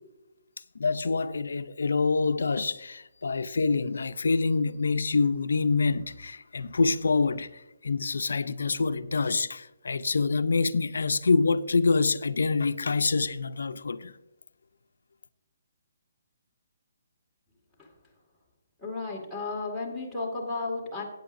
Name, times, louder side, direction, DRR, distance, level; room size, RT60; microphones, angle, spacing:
voice 1, 0.8-14.1, left 4 dB, 85° left, 0.5 m, -26 dB
voice 2, 18.8-21.0, left 3 dB, ahead, 2.0 m, -33 dB
14.0 x 9.2 x 2.6 m
hypercardioid pair, 160°, 0 cm